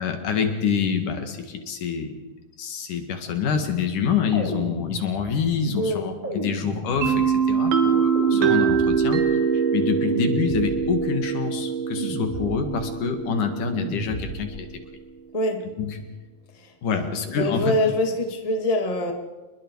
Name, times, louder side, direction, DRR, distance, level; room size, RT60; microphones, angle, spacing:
voice 1, 0.0-2.2 2.6-14.7 15.8-16.0 16.8-17.7, left 6 dB, 65° left, 6 dB, 3.3 m, -26 dB
sound 1, 4.3-5.5 6.2-7.4 8.1-9.3 10.0-11.1 12.0-12.9 13.8-14.7, right 1 dB, 15° right, 3.9 m, -33 dB
voice 2, 5.8-6.1 15.3-15.6 16.5-19.1, left 1 dB, 15° left, 3 dB, 1.8 m, -25 dB
sound 2, 7.0-14.7, right 6 dB, 85° right, 3.6 m, -23 dB
29.0 x 22.0 x 4.8 m, 1.2 s
omnidirectional pair, 4.0 m